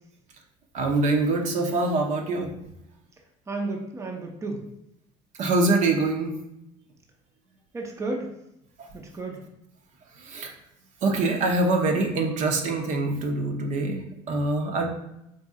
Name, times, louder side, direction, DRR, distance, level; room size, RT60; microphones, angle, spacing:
voice 1, 0.7-2.5 5.4-6.4 8.8-8.9 10.2-10.5 11.0-14.8, right 2 dB, 60° right, 3 dB, 0.7 m, -24 dB
voice 2, 3.5-4.6 7.7-8.3 8.9-9.4, right 2 dB, 20° right, 1 dB, 0.6 m, -32 dB
4.1 x 2.6 x 3.6 m, 0.83 s
cardioid pair, 115°, 15 cm